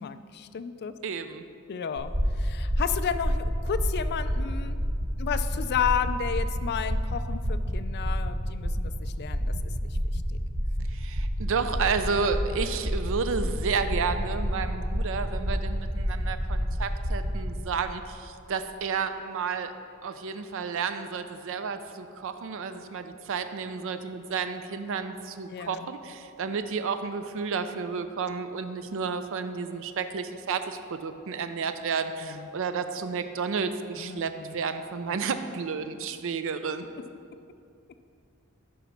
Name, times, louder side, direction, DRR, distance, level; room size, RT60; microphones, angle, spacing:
voice 1, 0.0-0.9 1.7-4.8 5.2-9.5 9.8-10.2 25.5-25.9 32.2-32.5 34.0-34.6, left 7 dB, 50° left, 10 dB, 0.4 m, -32 dB
voice 2, 1.0-1.4 10.9-19.7 20.0-36.8, right 5 dB, 65° right, 9 dB, 0.5 m, -31 dB
sound 1, 2.0-17.4, equal, 85° right, 1.5 m, -29 dB
10.0 x 5.0 x 5.8 m, 2.4 s
head